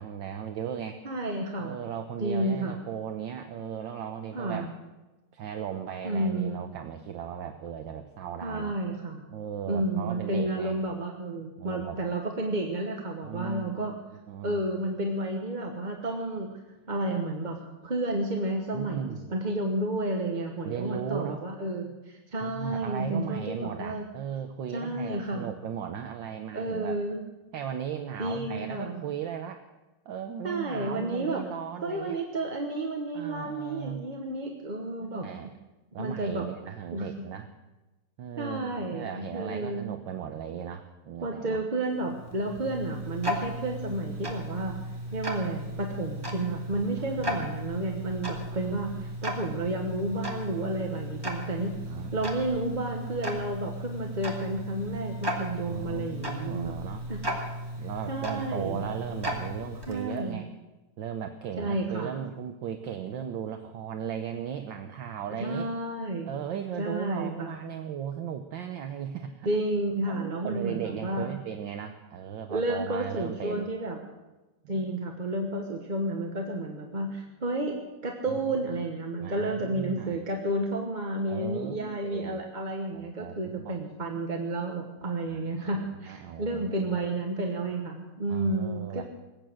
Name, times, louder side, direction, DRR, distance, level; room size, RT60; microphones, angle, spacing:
voice 1, 0.0-1.0 1.6-4.7 5.3-8.8 9.3-10.8 11.6-12.0 13.2-13.8 14.3-14.6 18.7-19.2 20.6-21.4 22.4-27.0 27.5-29.6 30.1-32.2 33.1-34.0 35.0-35.5 35.9-37.5 38.2-41.6 47.0-47.6 48.5-48.8 51.9-52.3 55.6-57.1 57.8-60.5 61.0-65.7 66.3-69.5 70.1-73.7 74.6-74.9 78.3-78.6 79.2-80.2 81.3-82.4 82.9-83.8 85.3-87.0 88.3-89.0, right 8 dB, 65° right, 6 dB, 1.5 m, -37 dB
voice 2, 1.0-1.8 2.2-2.8 4.3-4.7 6.0-6.6 8.4-9.2 9.7-13.9 14.4-16.6 16.9-17.6 17.8-24.1 24.7-25.5 26.5-27.2 28.2-29.0 30.4-31.4 31.8-35.3 36.0-36.5 36.9-37.1 38.4-39.9 41.2-44.8 45.1-51.7 52.1-56.7 57.1-57.2 58.1-58.8 59.9-60.4 61.6-62.1 65.4-66.3 66.8-67.6 69.4-71.3 72.5-74.0 74.7-77.8 78.0-89.0, right 1 dB, 25° right, 2 dB, 1.1 m, -31 dB
Tick-tock, 41.9-60.3, equal, 10° right, 1.9 m, -36 dB
20.5 x 8.7 x 7.7 m, 1.1 s
omnidirectional pair, 2.4 m